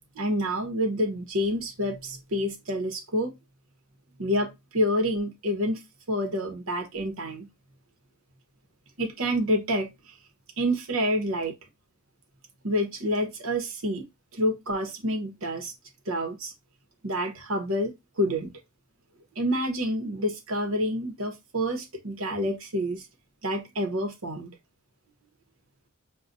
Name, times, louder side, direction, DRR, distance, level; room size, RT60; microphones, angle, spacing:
voice 1, 0.2-3.3 4.2-5.8 6.1-7.5 9.0-9.9 10.6-11.5 12.6-14.1 14.3-15.7 16.1-16.5 17.0-17.9 18.2-18.5 19.4-23.0 23.4-24.5, equal, 70° right, 1.0 m, -28 dB
6.4 x 2.3 x 2.6 m
head